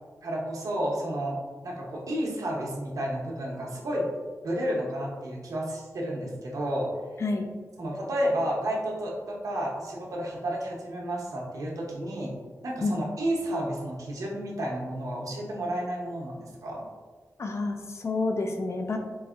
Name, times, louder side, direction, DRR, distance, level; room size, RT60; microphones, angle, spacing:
voice 1, 0.2-1.4 1.6-4.1 4.4-6.9 7.8-12.3 12.6-16.8, right 1 dB, 85° right, -3 dB, 0.9 m, -31 dB
voice 2, 17.4-19.0, left 3 dB, 55° left, 4 dB, 0.4 m, -29 dB
4.7 x 2.6 x 2.5 m, 1.4 s
wide cardioid pair, 115°, 6 cm